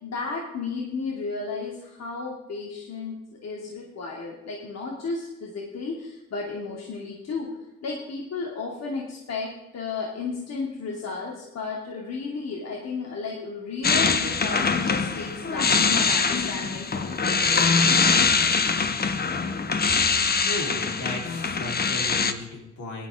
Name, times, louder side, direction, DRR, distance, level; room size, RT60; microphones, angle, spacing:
voice 1, 0.0-7.5 7.8-18.2, left 4 dB, 60° left, -2 dB, 2.6 m, -33 dB
sound 1, 13.8-22.3, left 5 dB, 30° left, 1.0 m, -23 dB
voice 2, 20.3-23.1, left 2 dB, 75° left, -1 dB, 4.1 m, -35 dB
16.5 x 11.5 x 3.7 m, 0.97 s
cardioid pair, 90°, 30 cm